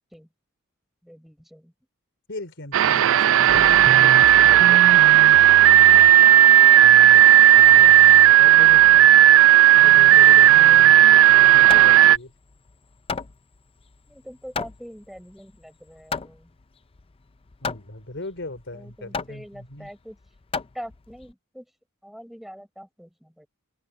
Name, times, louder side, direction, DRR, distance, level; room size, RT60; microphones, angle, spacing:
voice 1, 1.0-1.7 6.8-7.0 14.1-16.5 18.7-20.2 20.7-21.7 22.0-23.5, equal, ahead, 5.4 m, -43 dB
voice 2, 2.3-5.1 7.7-7.9 8.4-8.8 9.7-11.2 11.5-12.3 17.6-19.9, left 2 dB, 60° left, 3.9 m, -38 dB
sound 1, 2.7-12.2, right 12 dB, 65° right, 0.4 m, -13 dB
Hammer, 11.1-21.3, left 5 dB, 25° left, 0.5 m, -35 dB
head